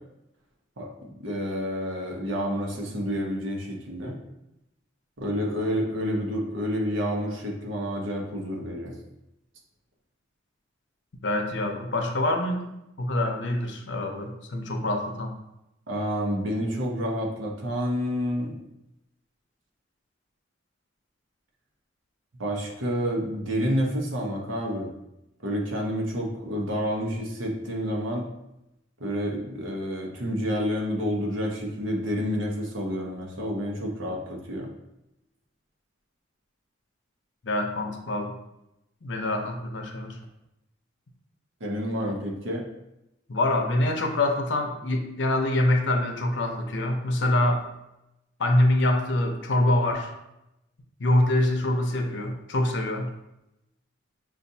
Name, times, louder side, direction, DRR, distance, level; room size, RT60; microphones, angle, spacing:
voice 1, 1.2-4.2 5.2-8.9 15.9-18.6 22.4-24.9 25.4-28.3 29.0-34.7 41.6-42.6, equal, 80° right, -1 dB, 0.9 m, -29 dB
voice 2, 11.2-12.7 13.0-15.3 37.4-38.3 39.0-40.2 43.3-47.6 48.4-50.1 51.0-53.1, left 1 dB, 65° left, 3 dB, 0.6 m, -25 dB
6.8 x 2.5 x 2.7 m, 0.89 s
head